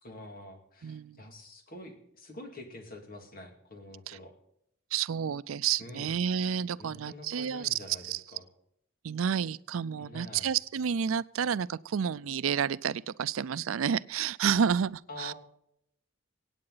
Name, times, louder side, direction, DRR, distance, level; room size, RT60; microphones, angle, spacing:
voice 1, 0.0-4.3 5.8-6.1 6.8-8.4 10.0-10.5 15.1-15.3, left 2 dB, 45° left, 4 dB, 2.4 m, -46 dB
voice 2, 0.8-1.2 4.1-4.2 4.9-8.2 9.0-15.3, right 7 dB, 85° right, 18 dB, 0.4 m, -30 dB
25.0 x 8.8 x 4.0 m, 0.75 s
head